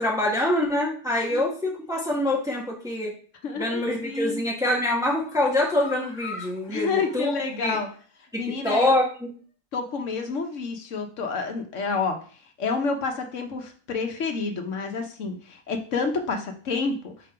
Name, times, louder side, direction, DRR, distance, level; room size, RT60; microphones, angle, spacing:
voice 1, 0.0-3.1 3.6-7.8 8.3-9.3, left 1 dB, 5° right, -3 dB, 1.2 m, -25 dB
voice 2, 3.4-4.4 6.7-7.9 8.3-8.9 9.7-17.1, left 4 dB, 90° left, 5 dB, 1.3 m, -29 dB
sound 1, 3.9-4.3 4.6-8.0 8.4-8.5 8.8-8.9, left 3 dB, 40° left, 1.1 m, -43 dB
4.5 x 3.7 x 5.6 m, 0.41 s
omnidirectional pair, 1.2 m